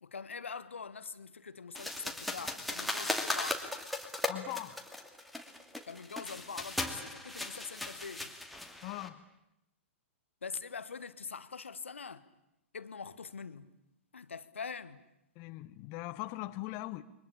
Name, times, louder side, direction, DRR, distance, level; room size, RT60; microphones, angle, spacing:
voice 1, 0.0-3.7 5.8-8.3 10.4-12.3 12.7-13.7 14.1-15.0, left 5 dB, 75° left, 1.4 m, -44 dB
sound 1, 1.7-9.1, left 1 dB, ahead, 2.6 m, -37 dB
voice 2, 4.3-4.8 8.8-9.2 15.4-17.0, left 17 dB, 35° left, 1.0 m, -40 dB
29.0 x 23.5 x 8.7 m
figure-of-eight pair, 110°, 7 cm